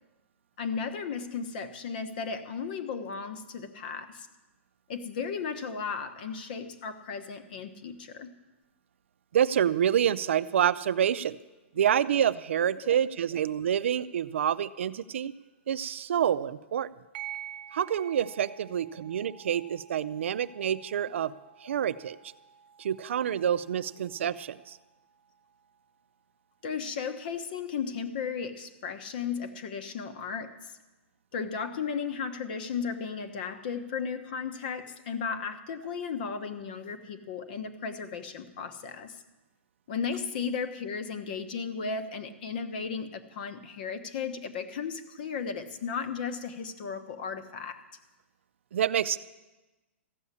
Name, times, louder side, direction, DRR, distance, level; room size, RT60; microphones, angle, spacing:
voice 1, 0.6-4.3 4.9-8.3 12.8-13.0 26.6-30.8 31.3-39.2 39.9-47.8, left 6 dB, 40° left, 9 dB, 1.1 m, -35 dB
voice 2, 9.3-11.4 11.7-15.3 15.7-16.9 17.7-21.3 21.6-22.2 22.8-24.8 48.7-49.2, right 9 dB, 65° right, 14 dB, 0.5 m, -27 dB
sound 1, 17.1-26.1, right 11 dB, 45° right, 1.2 m, -49 dB
15.0 x 7.1 x 9.6 m, 1.1 s
hypercardioid pair, 175°, 7 cm